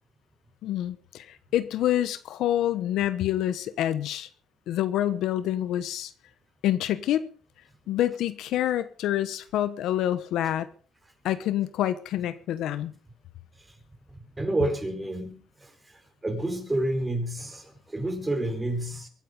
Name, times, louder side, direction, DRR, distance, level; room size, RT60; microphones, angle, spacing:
voice 1, 0.6-4.3 4.7-6.1 6.6-7.3 7.9-10.7 11.2-12.9, left 12 dB, 85° left, 1.1 m, -27 dB
voice 2, 14.1-19.1, right 1 dB, 15° right, 4.6 m, -30 dB
23.0 x 9.3 x 5.3 m
cardioid pair, 90°, 0 cm